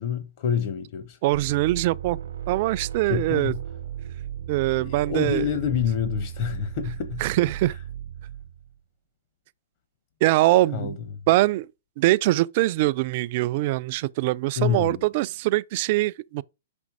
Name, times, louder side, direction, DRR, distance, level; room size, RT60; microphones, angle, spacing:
voice 1, 0.0-1.2 3.1-3.6 4.7-7.2 10.7-10.9 14.6-15.0, left 8 dB, 50° left, 1.0 m, -27 dB
voice 2, 1.2-2.2 2.5-3.5 4.5-5.4 7.2-7.7 10.2-11.0 11.3-11.7 12.0-16.4, right 17 dB, 45° right, 0.4 m, -23 dB
sound 1, 1.3-8.7, right 10 dB, 75° right, 0.8 m, -36 dB
5.7 x 5.2 x 4.8 m
hypercardioid pair, 135°, 0 cm